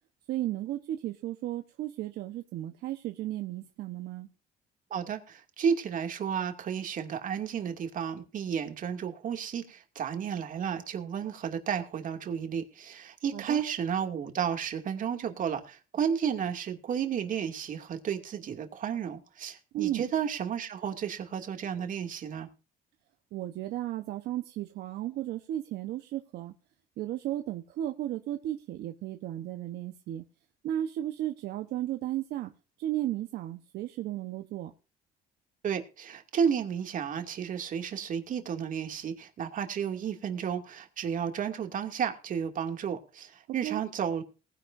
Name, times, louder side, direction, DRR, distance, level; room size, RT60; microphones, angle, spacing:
voice 1, 0.3-4.3 13.3-13.6 19.7-20.0 23.3-26.5 27.0-30.2 30.6-32.5 32.8-34.7 43.6-43.8, right 13 dB, 75° right, 1.1 m, -34 dB
voice 2, 4.9-22.5 35.6-44.2, right 7 dB, 50° right, 2.5 m, -32 dB
19.5 x 10.5 x 2.7 m
cardioid pair, 110°, 17 cm